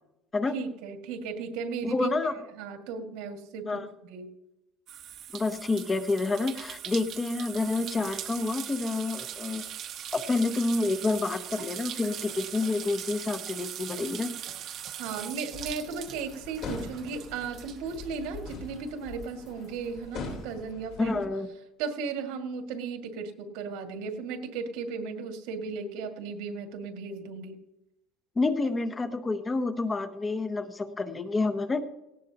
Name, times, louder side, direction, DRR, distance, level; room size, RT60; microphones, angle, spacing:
voice 1, 0.5-2.3 2.6-3.8 4.1-4.3 15.0-21.2 21.8-27.6, right 5 dB, 80° right, 5 dB, 2.1 m, -36 dB
voice 2, 1.8-2.3 3.7-3.9 5.3-9.6 10.1-14.3 21.0-21.5 28.4-31.8, left 3 dB, 20° left, 9 dB, 0.9 m, -28 dB
sound 1, 4.9-18.9 19.2-20.5, right 10 dB, 45° right, 1.1 m, -40 dB
sound 2, 15.5-21.3, left 4 dB, 45° left, 3.7 m, -43 dB
18.0 x 18.0 x 2.9 m, 0.92 s
cardioid pair, 150°, 0 cm